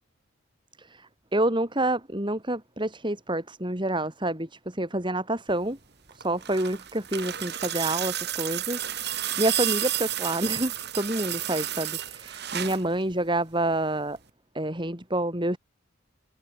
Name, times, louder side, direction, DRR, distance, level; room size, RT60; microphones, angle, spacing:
voice 1, 0.8-5.8 6.1-14.2 14.5-15.6, right 1 dB, 25° right, 4.8 m, -28 dB
sound 1, 6.1-12.9 14.2-14.3, right 12 dB, 55° right, 3.5 m, -31 dB
head